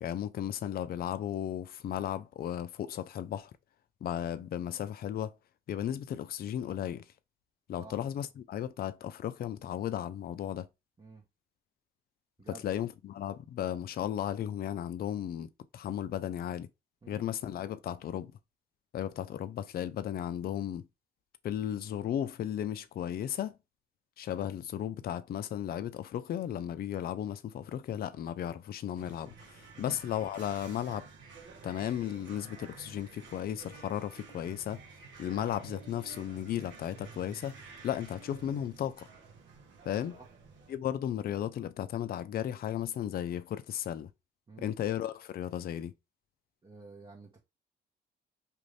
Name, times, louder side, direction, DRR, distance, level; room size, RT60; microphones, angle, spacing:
voice 1, 0.0-3.5 4.0-5.3 5.7-7.0 7.7-10.7 12.5-16.7 17.1-18.3 18.9-20.8 21.4-23.6 24.2-31.1 31.6-34.8 35.2-37.6 37.8-39.1 39.9-40.2 40.7-44.1 44.6-45.9, left 10 dB, 50° left, 0.4 m, -35 dB
sound 1, 28.9-40.8, right 5 dB, 70° right, 0.9 m, -51 dB
voice 2, 46.6-47.4, right 3 dB, 25° right, 0.8 m, -50 dB
2.6 x 2.5 x 3.2 m
cardioid pair, 90°, 20 cm